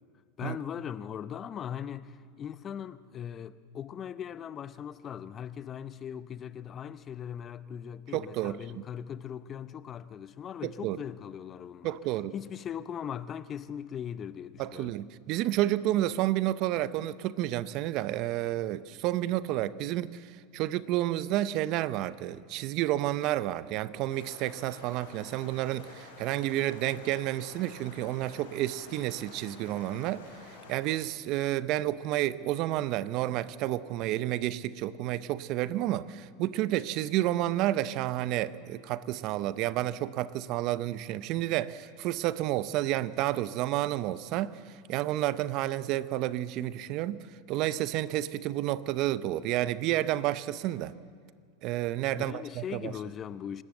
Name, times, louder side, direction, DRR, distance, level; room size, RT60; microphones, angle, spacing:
voice 1, 0.4-12.0 12.3-15.0 52.1-53.6, left 9 dB, 35° left, 0.6 m, -39 dB
voice 2, 8.1-8.8 10.6-11.0 11.8-12.3 14.6-30.3 30.7-44.6 44.9-47.2 47.5-50.9 51.6-52.9, right 14 dB, 55° right, 0.7 m, -30 dB
sound 1, 24.1-30.8, left 3 dB, 85° left, 5.7 m, -50 dB
26.5 x 13.0 x 7.8 m
hypercardioid pair, 100°, 0 cm